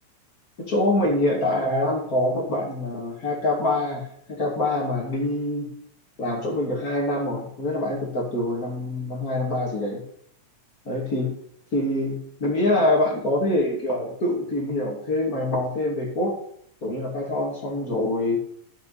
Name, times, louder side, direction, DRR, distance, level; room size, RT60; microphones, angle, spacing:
voice 1, 0.6-5.7 6.2-10.0 10.8-11.3 11.7-16.3 16.8-18.4, left 1 dB, 30° left, -2 dB, 2.6 m, -25 dB
11.5 x 9.0 x 4.2 m, 0.66 s
omnidirectional pair, 3.9 m